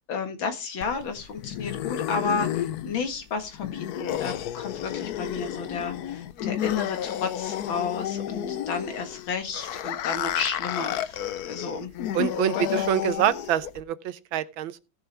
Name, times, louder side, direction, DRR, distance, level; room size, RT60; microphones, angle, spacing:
voice 1, 0.0-11.9 12.2-12.3 12.5-12.9, left 5 dB, 80° left, 2.5 m, -32 dB
sound 1, 0.8-13.8, left 11 dB, 65° left, 1.0 m, -31 dB
voice 2, 12.1-14.8, right 11 dB, 85° right, 1.6 m, -26 dB
16.5 x 7.0 x 3.4 m
omnidirectional pair, 2.1 m